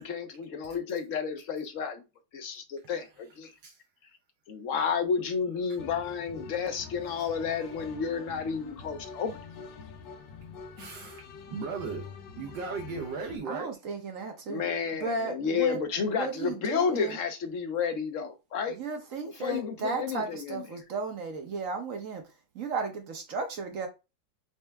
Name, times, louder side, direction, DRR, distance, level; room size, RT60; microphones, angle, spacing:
voice 1, 0.0-2.0 2.3-3.5 4.5-9.4 14.5-18.8 19.3-20.7, left 6 dB, 60° left, 0.8 m, -31 dB
sound 1, 5.8-13.4, left 5 dB, 80° left, 1.5 m, -45 dB
voice 2, 10.7-11.2 11.5-12.0 12.4-13.7, right 4 dB, 75° right, 1.4 m, -36 dB
voice 3, 13.5-14.6 15.0-15.8 16.1-17.2 18.7-22.2 22.5-23.9, right 4 dB, 55° right, 1.0 m, -34 dB
4.5 x 3.2 x 3.4 m
omnidirectional pair, 2.0 m